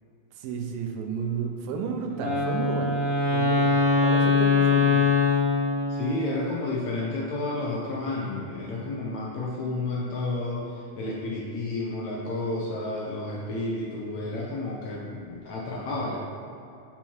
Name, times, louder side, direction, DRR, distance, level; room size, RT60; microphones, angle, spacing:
voice 1, 0.4-3.0 3.3-5.1, right 5 dB, 80° right, 4 dB, 2.5 m, -32 dB
Wind instrument woodwind instrument, 2.1-6.3, left 4 dB, 30° right, 1.9 m, -22 dB
voice 2, 5.9-16.2, left 2 dB, 70° left, -3 dB, 1.7 m, -31 dB
8.8 x 5.6 x 4.6 m, 2.7 s
omnidirectional pair, 4.2 m